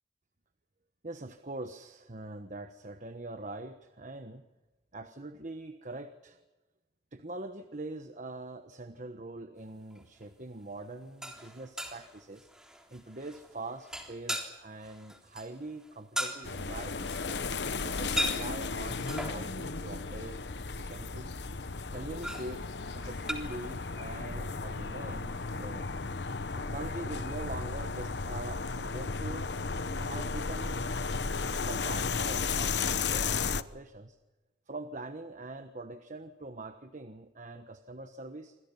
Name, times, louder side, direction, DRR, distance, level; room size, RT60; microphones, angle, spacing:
voice 1, 1.0-4.4 4.9-6.4 7.1-12.5 12.9-17.1 17.6-20.4 20.6-21.3 21.9-22.6 22.9-25.9 26.6-30.9 31.5-34.2 34.7-38.6, right 2 dB, 45° right, 8 dB, 1.2 m, -43 dB
sound 1, 9.9-10.2 11.0-19.5 21.9-23.3, equal, 5° right, 3.7 m, -39 dB
sound 2, 16.4-33.6, left 4 dB, 70° left, 1.0 m, -34 dB
27.5 x 26.0 x 5.7 m, 1.1 s
head